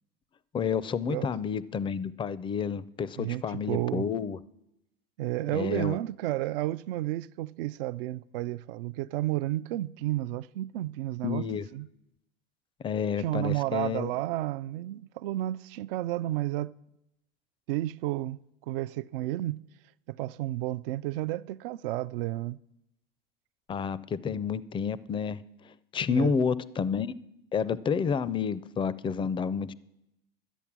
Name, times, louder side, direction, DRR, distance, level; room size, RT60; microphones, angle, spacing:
voice 1, 0.5-4.4 5.5-6.0 11.2-11.7 12.8-14.1 23.7-25.4 25.9-27.1 27.5-29.7, left 6 dB, 15° left, 0.4 m, -30 dB
voice 2, 3.2-4.1 5.2-11.4 11.7-11.9 13.2-16.7 17.7-19.6 20.1-22.6 26.1-26.4, right 16 dB, 70° right, 0.4 m, -32 dB
12.5 x 8.1 x 6.0 m
hypercardioid pair, 100°, 29 cm